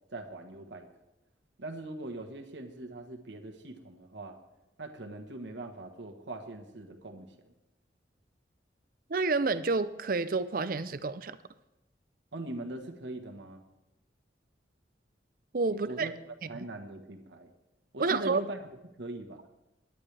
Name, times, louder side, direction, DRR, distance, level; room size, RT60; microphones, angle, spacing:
voice 1, 0.1-0.9 1.6-4.4 4.8-7.3 12.3-13.6 15.8-16.1 16.5-17.5 17.9-18.7 19.0-19.4, right 2 dB, 75° right, 4 dB, 1.4 m, -41 dB
voice 2, 9.1-11.4 15.5-16.1 16.5-16.7 18.0-18.4, right 3 dB, 50° right, 14 dB, 0.6 m, -29 dB
19.0 x 11.0 x 3.4 m, 0.98 s
head